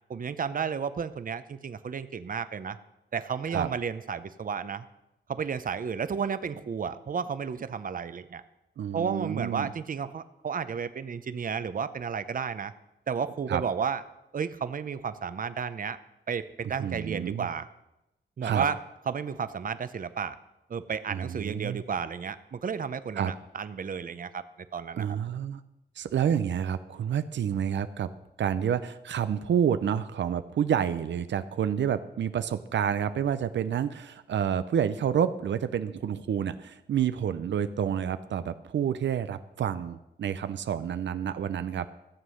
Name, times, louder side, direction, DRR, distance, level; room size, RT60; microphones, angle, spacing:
voice 1, 0.1-2.8 3.1-4.8 5.3-8.4 8.9-12.7 13.1-14.0 14.3-16.0 16.3-17.7 18.4-18.8 19.1-20.4 20.7-24.4 24.7-25.2, right 6 dB, 50° right, 13 dB, 0.6 m, -32 dB
voice 2, 8.8-9.7 13.5-13.6 16.8-17.5 18.4-18.6 21.1-21.8 23.2-23.3 25.0-25.6 26.0-28.1 28.4-41.9, right 8 dB, 90° right, 11 dB, 0.5 m, -29 dB
14.0 x 7.5 x 6.4 m, 0.92 s
wide cardioid pair, 100°, 18 cm